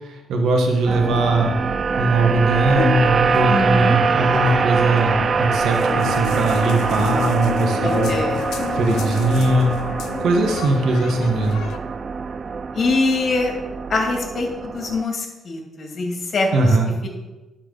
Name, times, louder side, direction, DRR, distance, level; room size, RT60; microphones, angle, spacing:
voice 1, 0.0-1.5 2.0-8.2 8.7-9.8 10.2-11.7 16.5-16.9, right 2 dB, 75° right, 2 dB, 1.4 m, -20 dB
sound 1, 0.9-15.0, right 5 dB, 40° right, 0.3 m, -24 dB
sound 2, 2.7-11.8, left 6 dB, 80° left, 0.7 m, -29 dB
voice 2, 3.5-4.0 7.8-8.4 12.7-13.5 13.9-16.5 17.0-17.1, left 3 dB, 45° left, 1 dB, 2.3 m, -23 dB
9.8 x 4.6 x 6.7 m, 1.1 s
cardioid pair, 90°, 0 cm